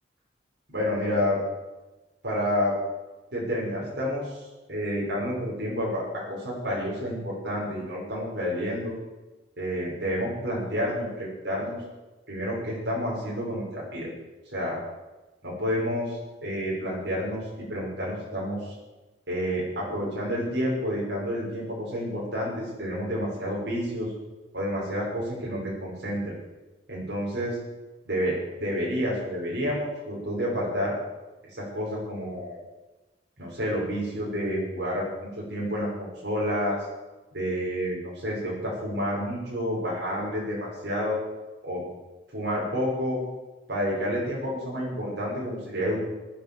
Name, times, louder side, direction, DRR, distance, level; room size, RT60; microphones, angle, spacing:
voice 1, 0.7-1.4 2.2-2.7 3.3-6.0 6.3-8.9 9.6-11.8 12.3-14.1 14.5-14.8 15.4-18.8 19.3-24.1 24.5-26.2 26.9-27.6 28.0-30.9 31.5-32.6 33.4-35.0 35.4-36.8 37.3-41.2 41.6-41.8 42.3-43.2 43.7-46.0, equal, 70° right, -4 dB, 6.1 m, -29 dB
18.5 x 9.0 x 7.2 m, 1.1 s
head